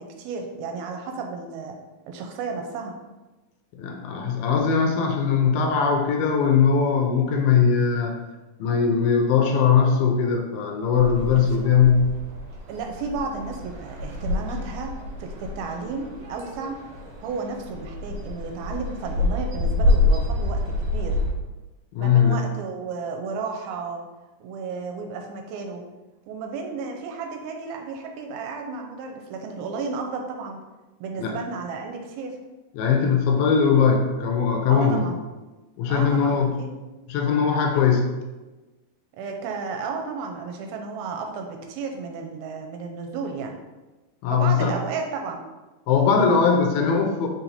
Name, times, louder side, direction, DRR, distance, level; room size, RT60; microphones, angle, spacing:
voice 1, 0.0-1.8 2.1-3.0 11.3-11.6 12.7-16.8 17.2-21.2 22.0-24.0 24.4-25.8 26.3-30.6 31.0-32.4 34.7-35.2 35.9-36.7 39.1-43.6 44.3-45.4, right 4 dB, 80° right, 3 dB, 2.4 m, -33 dB
voice 2, 3.7-8.2 8.6-12.1 21.9-22.4 31.2-31.4 32.8-35.0 35.8-36.5 37.1-38.1 44.2-44.7 45.9-47.3, left 6 dB, 80° left, 3 dB, 2.4 m, -20 dB
sound 1, 10.9-21.3, left 2 dB, 60° right, 2.0 m, -27 dB
5.3 x 4.4 x 4.1 m, 1.1 s
omnidirectional pair, 4.4 m